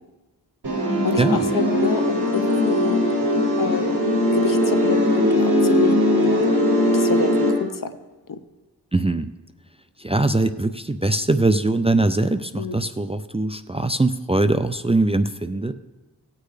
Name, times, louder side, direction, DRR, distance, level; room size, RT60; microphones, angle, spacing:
sound 1, 0.6-7.5, left 1 dB, 80° right, 4.5 m, -20 dB
voice 1, 1.0-3.0 3.6-6.4 6.9-7.9 8.3-8.4 12.6-12.9, left 5 dB, 55° left, 11 dB, 0.7 m, -29 dB
voice 2, 8.9-9.3 10.0-15.7, right 2 dB, 15° right, 9 dB, 0.4 m, -21 dB
17.5 x 8.4 x 3.3 m, 1.1 s
wide cardioid pair, 60°, 38 cm